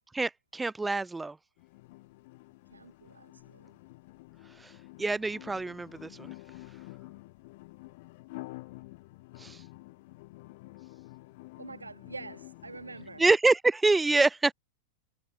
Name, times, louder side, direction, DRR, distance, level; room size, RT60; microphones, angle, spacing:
voice 1, 0.1-1.4 4.6-4.7 5.0-6.3 9.4-9.6 13.2-14.5, right 3 dB, 10° right, 0.7 m, -26 dB
sound 1, 1.6-13.2, left 22 dB, 50° left, 4.9 m, -49 dB
voice 2, 2.7-3.8 11.6-13.2, right 3 dB, 80° right, 5.0 m, -46 dB
figure-of-eight pair, 90°, 0 cm